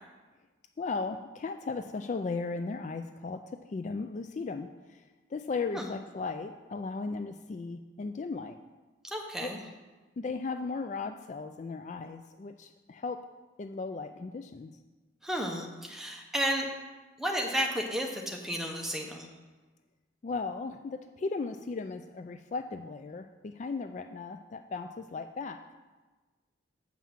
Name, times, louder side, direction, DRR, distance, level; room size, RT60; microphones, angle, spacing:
voice 1, 0.8-8.6 9.4-9.5 10.2-13.2 13.6-14.7 20.2-25.6, left 4 dB, 40° left, 7 dB, 0.3 m, -36 dB
voice 2, 9.1-9.6 15.2-16.7 17.2-19.3, equal, ahead, 0 dB, 1.0 m, -32 dB
7.3 x 5.7 x 7.3 m, 1.3 s
head